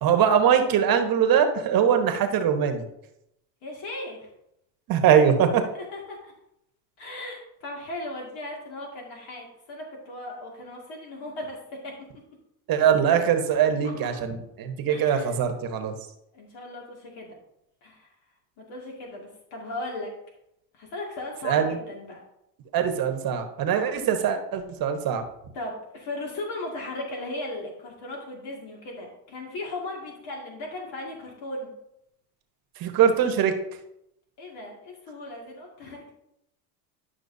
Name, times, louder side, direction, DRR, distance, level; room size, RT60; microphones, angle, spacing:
voice 1, 0.0-2.8 4.9-5.6 12.7-15.9 21.4-21.8 22.7-25.2 32.8-33.5, right 8 dB, 45° right, 6 dB, 1.2 m, -22 dB
voice 2, 3.6-4.3 5.7-6.3 7.0-11.9 13.8-13.9 14.9-15.3 16.3-17.4 17.8-18.1 18.6-20.1 20.7-22.2 25.5-31.7 34.4-36.1, left 2 dB, 60° left, -1 dB, 2.2 m, -37 dB
11.0 x 5.9 x 2.7 m, 0.81 s
supercardioid pair, 105°, 48 cm